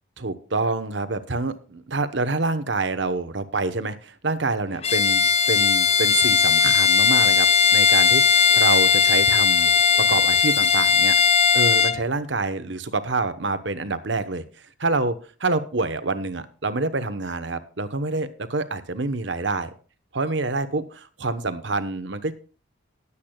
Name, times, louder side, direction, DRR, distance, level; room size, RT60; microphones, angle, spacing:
voice 1, 0.2-11.2 11.5-19.7 20.1-22.3, right 3 dB, 65° right, 11 dB, 1.1 m, -27 dB
Bowed string instrument, 4.8-12.0, left 6 dB, 30° left, 0.5 m, -18 dB
19.5 x 8.4 x 2.3 m, 0.39 s
head